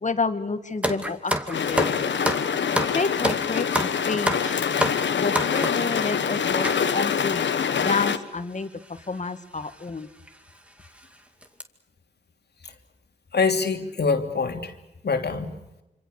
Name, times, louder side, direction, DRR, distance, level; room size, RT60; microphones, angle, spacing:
voice 1, 0.0-1.9 2.9-3.7 4.1-4.6 5.2-6.7 6.9-7.5 7.8-8.7 9.1-10.1, left 4 dB, 40° left, 9 dB, 2.1 m, -29 dB
sound 1, 0.8-5.9 6.6-6.8 7.5-7.6 7.8-8.0 9.0-9.2 9.6-9.7 10.3-10.4 10.8-11.0 11.4-11.6, equal, 5° right, 2.3 m, -28 dB
sound 2, 1.5-8.2, left 7 dB, 80° left, 1.4 m, -25 dB
voice 2, 13.3-14.7 15.0-15.5, left 4 dB, 60° left, 5 dB, 2.9 m, -25 dB
26.5 x 26.0 x 6.8 m, 0.93 s
cardioid pair, 65°, 19 cm